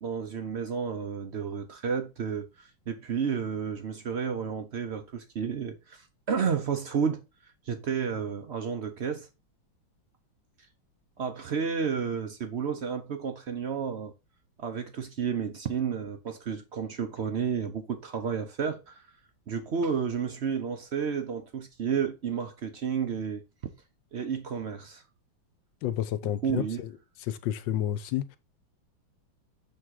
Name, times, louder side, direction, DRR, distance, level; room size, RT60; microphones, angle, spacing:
voice 1, 0.0-7.2 7.7-9.3 11.2-14.1 14.6-19.0 19.5-23.4 24.1-25.0 26.4-26.8, right 6 dB, 70° right, 0.6 m, -31 dB
voice 2, 25.8-26.9 27.2-28.4, left 12 dB, 75° left, 1.3 m, -30 dB
7.3 x 3.7 x 4.6 m
omnidirectional pair, 2.2 m